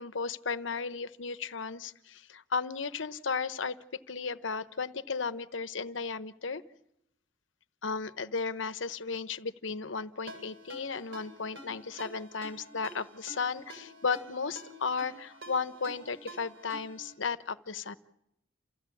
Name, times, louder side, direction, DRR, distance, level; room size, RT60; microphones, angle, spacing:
voice 1, 0.0-3.8 4.1-6.6 7.8-17.9, left 5 dB, 70° left, 13 dB, 1.0 m, -35 dB
Ringtone, 10.3-17.1, right 1 dB, 70° right, 7.8 m, -49 dB
28.5 x 15.5 x 8.5 m, 0.82 s
head